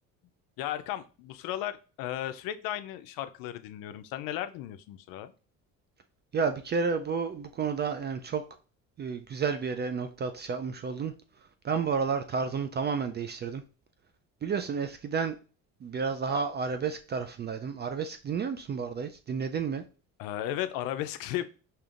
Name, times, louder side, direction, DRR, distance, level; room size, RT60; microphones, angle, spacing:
voice 1, 0.6-5.3 20.2-21.6, left 12 dB, 75° left, 11 dB, 0.5 m, -35 dB
voice 2, 6.3-8.4 9.0-11.1 11.6-13.6 14.4-15.4 15.8-19.8, right 5 dB, 30° right, 7 dB, 0.4 m, -31 dB
4.9 x 2.8 x 2.4 m, 0.36 s
supercardioid pair, 80°, 35 cm